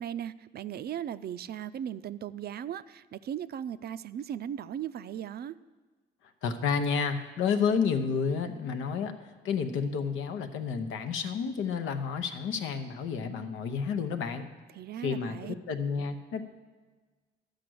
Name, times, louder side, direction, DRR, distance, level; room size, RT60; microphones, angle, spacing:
voice 1, 0.0-5.5 14.7-15.5 16.0-16.1, right 10 dB, 55° right, 14 dB, 0.4 m, -37 dB
voice 2, 6.4-9.1 9.4-14.5 15.0-16.4, left 6 dB, 85° left, 7 dB, 0.8 m, -30 dB
11.5 x 5.0 x 7.8 m, 1.4 s
cardioid pair, 90°, 20 cm